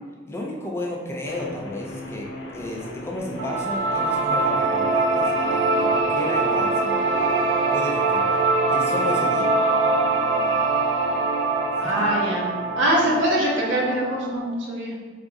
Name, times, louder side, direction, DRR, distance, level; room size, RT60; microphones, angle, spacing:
voice 1, 0.3-9.5 11.7-11.9, left 1 dB, 15° left, -2 dB, 0.4 m, -33 dB
sound 1, 1.3-14.2, left 1 dB, 65° left, 0.7 m, -39 dB
sound 2, 3.4-14.5, right 3 dB, 90° right, 0.5 m, -23 dB
voice 2, 11.8-12.4 12.8-14.9, right 1 dB, 70° right, -4 dB, 0.9 m, -23 dB
3.5 x 2.4 x 3.9 m, 1.5 s
head